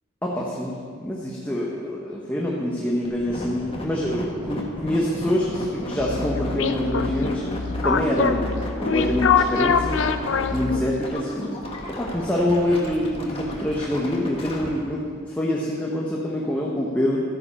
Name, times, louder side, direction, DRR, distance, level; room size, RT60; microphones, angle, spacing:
voice 1, 0.2-7.4 7.8-10.1 10.5-11.6 11.9-17.2, left 1 dB, 10° left, -4 dB, 1.1 m, -25 dB
sound 1, 3.0-14.7, left 1 dB, 25° left, 1.6 m, -34 dB
sound 2, 6.0-11.1, left 5 dB, 60° left, 0.6 m, -24 dB
13.0 x 9.3 x 5.6 m, 2.2 s
head